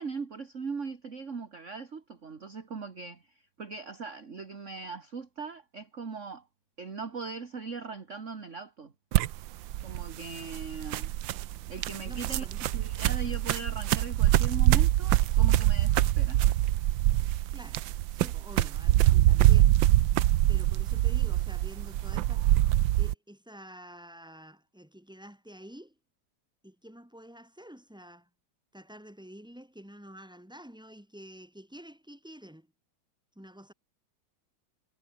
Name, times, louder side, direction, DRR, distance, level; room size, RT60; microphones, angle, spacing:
voice 1, 0.0-6.5 6.8-8.9 9.8-11.1 11.7-12.5 12.7-16.4, right 4 dB, 35° right, 2.1 m, -40 dB
sound 1, 9.1-23.1, right 14 dB, 70° right, 1.4 m, -24 dB
voice 2, 12.0-12.7 17.5-17.8 18.1-19.8 20.5-22.5 23.0-25.9 26.6-28.3 28.7-32.7 33.3-33.7, equal, ahead, 4.8 m, -49 dB
omnidirectional pair, 2.3 m